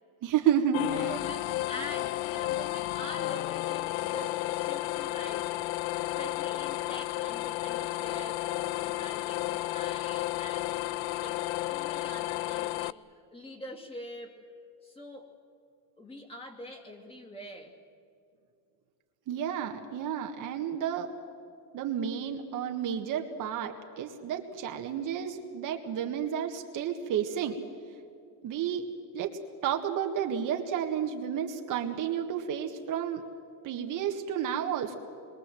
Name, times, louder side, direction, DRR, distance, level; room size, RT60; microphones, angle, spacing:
voice 1, 0.2-1.1 19.3-21.1 21.7-27.6 28.4-33.2 33.6-35.0, right 8 dB, 40° right, 4 dB, 1.7 m, -31 dB
sound 1, 0.7-12.9, left 16 dB, 55° left, 0.5 m, -32 dB
voice 2, 1.1-5.6 6.2-10.7 11.1-11.4 11.7-13.0 13.3-14.4 14.8-15.3 16.0-17.7, left 1 dB, 10° left, 1 dB, 2.7 m, -44 dB
27.5 x 22.5 x 7.7 m, 2.5 s
cardioid pair, 155°, 46 cm